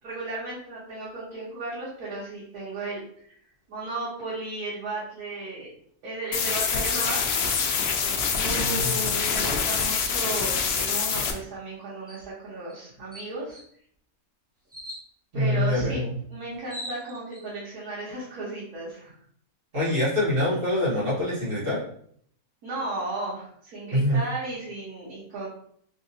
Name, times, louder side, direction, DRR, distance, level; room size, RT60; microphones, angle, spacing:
voice 1, 0.0-3.0 3.7-5.7 6.0-7.2 8.0-13.6 15.3-16.0 16.3-19.1 22.6-25.5, right 2 dB, 90° right, -8 dB, 1.6 m, -34 dB
sound 1, 6.3-11.3, left 6 dB, 75° left, 0.5 m, -25 dB
voice 2, 8.5-9.0 15.3-16.1 19.7-21.8 23.9-24.2, left 1 dB, 55° right, -8 dB, 1.9 m, -25 dB
sound 2, 12.1-12.3 12.7-12.8 13.1-13.6 14.7-15.0 16.2-16.3 16.5-17.4, equal, 15° right, 0.5 m, -40 dB
3.5 x 2.8 x 2.7 m, 0.63 s
omnidirectional pair, 1.6 m